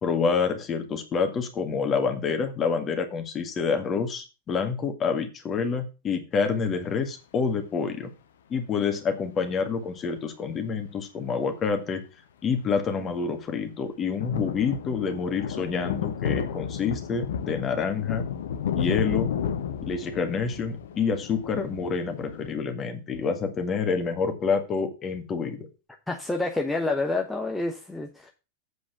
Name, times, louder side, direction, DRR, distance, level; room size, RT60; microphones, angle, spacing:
voice 1, 0.0-8.1 8.5-12.0 12.4-18.2 18.7-19.3 19.9-25.7, left 5 dB, 25° left, 6 dB, 1.9 m, -27 dB
sound 1, 12.6-12.7 13.1-13.2 14.0-22.5, left 8 dB, 60° left, 0.9 m, -32 dB
voice 2, 26.1-28.3, left 2 dB, 5° left, 1 dB, 1.1 m, -28 dB
8.2 x 4.9 x 7.2 m, 0.30 s
figure-of-eight pair, 90°, 0 cm